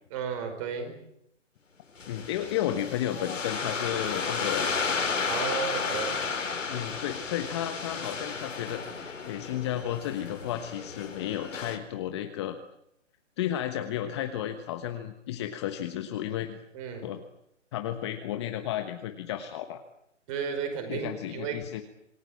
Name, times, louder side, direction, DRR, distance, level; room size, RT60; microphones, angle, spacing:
voice 1, 0.1-1.0 5.3-6.2 16.7-17.1 20.3-21.6, right 6 dB, 25° right, 6 dB, 5.2 m, -33 dB
sound 1, 2.0-11.8, left 5 dB, 75° left, 4.4 m, -33 dB
voice 2, 2.1-4.7 6.7-12.6 13.4-16.6 17.0-17.2 17.7-19.8 20.9-21.8, left 11 dB, 20° left, 7 dB, 1.2 m, -33 dB
27.0 x 20.0 x 8.7 m, 0.77 s
hypercardioid pair, 150°, 38 cm